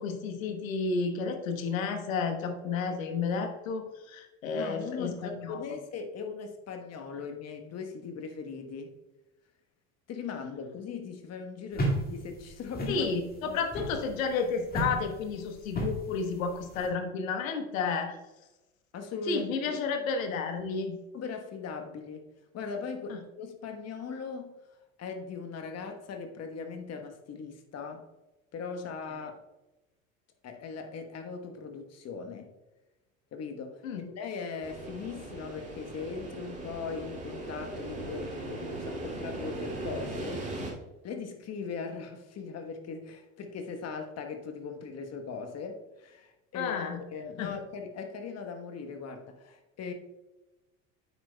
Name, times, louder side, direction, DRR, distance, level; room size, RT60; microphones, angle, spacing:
voice 1, 0.0-5.6 11.8-11.9 12.9-18.2 19.3-21.0 23.1-23.2 33.8-34.0 46.5-47.0 47.4-47.5, left 5 dB, 75° left, 1.3 m, -31 dB
voice 2, 4.5-9.0 10.1-13.1 13.4-13.6 18.9-19.7 21.1-22.3 22.5-24.6 25.0-28.1 28.5-29.4 30.4-32.5 33.3-40.5 41.0-49.9, left 5 dB, 40° left, 1.2 m, -39 dB
sound 1, 11.7-16.9, right 1 dB, 20° left, 2.0 m, -34 dB
sound 2, 34.6-40.7, right 2 dB, 20° right, 2.4 m, -38 dB
9.2 x 8.3 x 2.3 m
hypercardioid pair, 75°, 41 cm